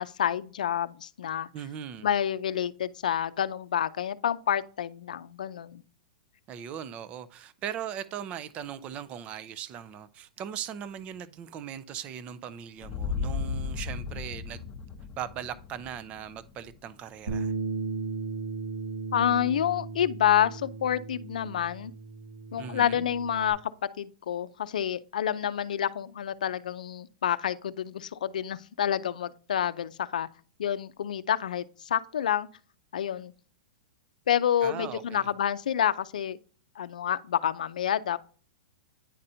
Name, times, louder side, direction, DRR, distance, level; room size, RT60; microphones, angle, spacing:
voice 1, 0.0-1.5 2.0-5.8 19.1-21.9 22.5-23.6 24.0-30.3 30.6-32.5 32.9-33.3 34.3-36.4 36.8-38.2, left 10 dB, 80° left, 0.5 m, -28 dB
voice 2, 1.5-2.1 6.5-14.7 15.2-17.5 22.6-23.0 34.6-35.3, right 9 dB, 30° right, 0.5 m, -39 dB
sound 1, 12.8-16.9, left 5 dB, 25° left, 0.8 m, -35 dB
Bass guitar, 17.3-23.5, right 4 dB, 80° right, 2.1 m, -36 dB
10.0 x 4.2 x 2.7 m
hypercardioid pair, 135°, 4 cm